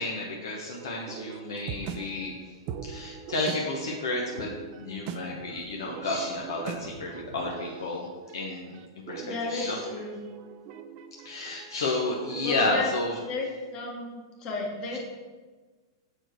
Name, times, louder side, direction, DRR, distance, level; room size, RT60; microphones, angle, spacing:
voice 1, 0.0-2.4 2.9-8.1 8.3-8.7 9.1-9.8 11.2-13.2, left 2 dB, 75° left, -1 dB, 0.9 m, -31 dB
sound 1, 0.7-12.9, right 8 dB, 45° right, 0.5 m, -42 dB
voice 2, 9.2-10.2 12.4-12.9 13.3-15.0, left 3 dB, 40° left, -1 dB, 1.8 m, -33 dB
6.6 x 4.4 x 4.5 m, 1.3 s
hypercardioid pair, 110°, 2 cm